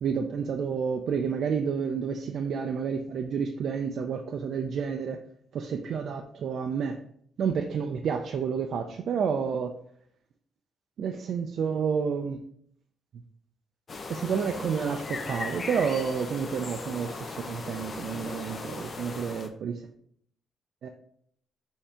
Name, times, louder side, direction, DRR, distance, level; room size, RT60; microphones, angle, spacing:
voice 1, 0.0-5.2 5.5-7.0 7.4-9.7 11.0-12.4 14.1-19.7 20.8-20.9, right 6 dB, 65° right, 4 dB, 0.4 m, -30 dB
sound 1, 13.9-19.5, left 3 dB, 40° left, 0.6 m, -38 dB
5.5 x 2.7 x 3.4 m, 0.66 s
cardioid pair, 90°, 0 cm